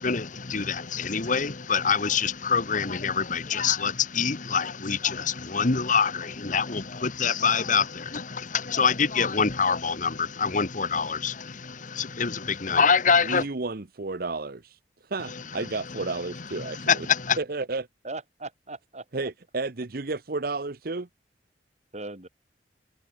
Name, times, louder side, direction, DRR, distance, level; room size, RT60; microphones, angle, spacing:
voice 1, 0.0-13.5 15.3-16.0 16.3-17.4, left 6 dB, 45° left, 1.1 m, -25 dB
voice 2, 13.2-17.1 17.4-17.9 19.1-21.1, right 3 dB, 55° right, 0.9 m, -32 dB
voice 3, 18.0-19.3 21.9-22.3, right 2 dB, 40° right, 3.0 m, -39 dB
head